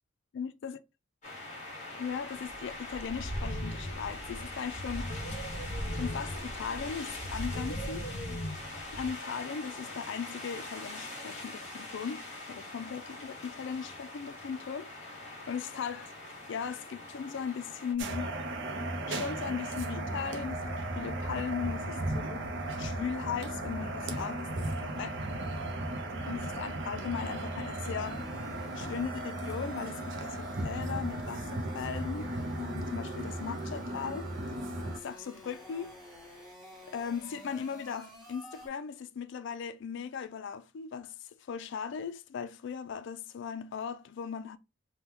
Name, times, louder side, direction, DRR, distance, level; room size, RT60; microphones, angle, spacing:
voice 1, 0.3-0.8 2.0-5.1 5.9-8.1 8.9-12.2 12.5-14.9 15.5-16.1 16.5-18.3 19.1-22.5 22.8-25.2 26.3-28.2 28.7-32.3 32.6-34.3 34.8-35.9 36.9-41.1 41.5-44.6, left 7 dB, 60° left, 0.3 m, -38 dB
sound 1, 1.2-17.9, left 1 dB, 35° left, 1.3 m, -40 dB
sound 2, 18.0-35.0, right 1 dB, 60° right, 0.6 m, -36 dB
sound 3, 28.0-38.7, left 1 dB, 5° right, 1.2 m, -51 dB
3.4 x 2.2 x 2.9 m
head